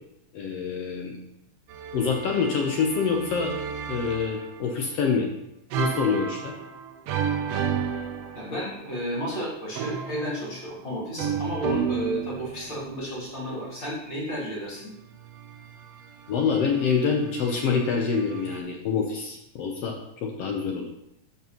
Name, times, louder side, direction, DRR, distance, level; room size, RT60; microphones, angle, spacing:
voice 1, 0.3-1.2 1.9-3.5 3.9-5.3 5.8-6.5 16.3-20.0 20.2-20.9, left 5 dB, 70° left, 1 dB, 1.6 m, -26 dB
sound 1, 1.7-4.8 5.7-8.9 9.7-13.1 15.2-18.6, right 7 dB, 85° right, 1.3 m, -33 dB
voice 2, 8.3-14.9, equal, 35° left, -6 dB, 3.3 m, -32 dB
12.5 x 5.9 x 3.0 m, 0.82 s
omnidirectional pair, 3.6 m